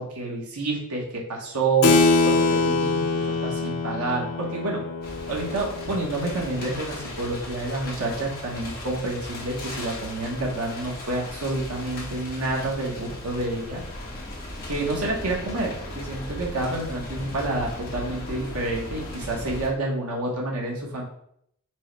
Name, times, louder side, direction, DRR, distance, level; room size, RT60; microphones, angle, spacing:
voice 1, 0.0-4.8 5.3-13.8 14.6-21.0, right 2 dB, 80° right, -1 dB, 0.9 m, -29 dB
Keyboard (musical), 1.8-7.8, left 3 dB, 80° left, 0.5 m, -25 dB
sound 1, 5.0-19.7, left 1 dB, 45° left, 1.3 m, -37 dB
4.5 x 2.0 x 4.4 m, 0.71 s
head